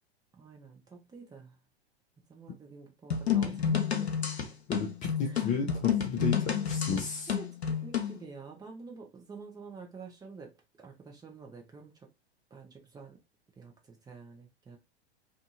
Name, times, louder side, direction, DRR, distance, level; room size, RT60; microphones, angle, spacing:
voice 1, 0.4-1.6 2.3-4.1 5.2-5.6 7.3-12.1 12.5-13.2 13.6-14.8, right 4 dB, 10° right, 0.8 m, -48 dB
sound 1, 3.1-8.2, left 7 dB, 75° left, 0.7 m, -30 dB
voice 2, 4.7-7.3, left 5 dB, 25° left, 0.5 m, -33 dB
2.7 x 2.6 x 2.4 m
figure-of-eight pair, 95°, 32 cm